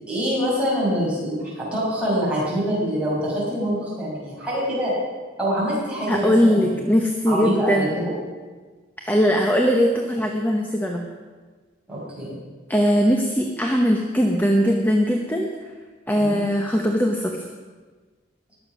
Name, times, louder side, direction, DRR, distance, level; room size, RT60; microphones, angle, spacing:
voice 1, 0.1-4.9 5.4-6.8 7.3-8.0 11.9-12.3 16.2-16.4, equal, 5° right, -8 dB, 5.7 m, -25 dB
voice 2, 6.1-7.9 9.0-11.0 12.7-15.5 16.1-17.4, equal, 10° left, 2 dB, 0.9 m, -20 dB
20.5 x 7.4 x 6.0 m, 1.4 s
head